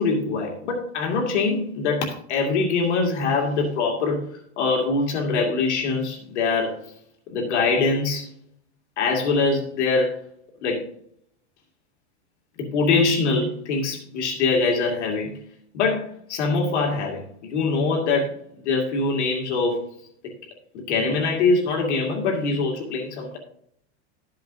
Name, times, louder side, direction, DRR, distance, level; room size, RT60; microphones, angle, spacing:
voice 1, 0.0-6.9 7.3-8.3 9.0-10.2 10.6-10.9 12.6-15.4 15.7-18.4 18.6-19.8 20.7-23.4, left 4 dB, 85° left, 0 dB, 2.4 m, -23 dB
13.0 x 7.6 x 2.7 m, 0.67 s
supercardioid pair, 155°, 34 cm